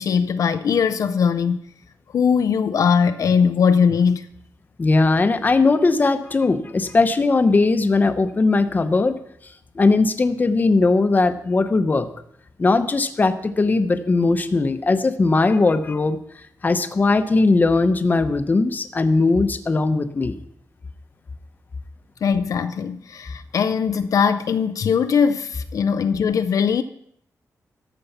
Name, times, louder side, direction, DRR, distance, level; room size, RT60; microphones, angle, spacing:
voice 1, 0.0-1.6 2.1-4.3 22.2-26.8, left 6 dB, 65° left, 0.5 m, -20 dB
voice 2, 4.8-9.2 9.8-12.1 12.6-16.2 16.6-20.4, left 3 dB, 30° left, 0.8 m, -19 dB
13.5 x 7.0 x 5.7 m
wide cardioid pair, 120°, 6 cm